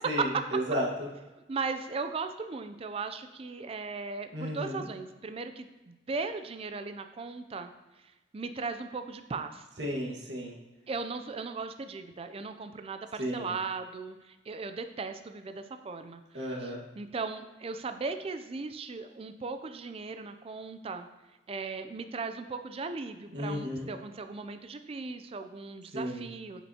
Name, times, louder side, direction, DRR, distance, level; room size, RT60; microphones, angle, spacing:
voice 1, 0.0-1.1 4.3-4.8 9.8-10.6 13.2-13.5 16.3-16.8 23.3-23.9 25.9-26.3, equal, 75° right, -2 dB, 1.6 m, -33 dB
voice 2, 1.5-7.7 8.3-9.6 10.9-16.6 17.0-21.1 21.5-26.6, right 4 dB, 35° right, 9 dB, 0.4 m, -38 dB
9.6 x 5.5 x 2.8 m, 1.1 s
head